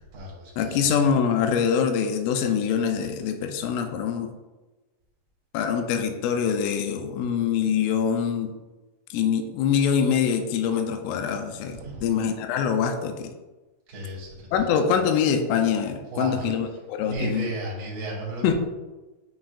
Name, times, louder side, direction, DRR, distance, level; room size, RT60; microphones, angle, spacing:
voice 1, 0.0-0.9 11.7-12.1 13.9-14.7 16.1-16.5 17.0-18.5, right 2 dB, 35° right, -5 dB, 1.7 m, -34 dB
voice 2, 0.6-4.3 5.5-8.5 9.1-13.3 14.5-17.5 18.4-18.5, left 7 dB, 90° left, 5 dB, 3.2 m, -24 dB
8.7 x 6.1 x 2.4 m, 1.1 s
omnidirectional pair, 5.7 m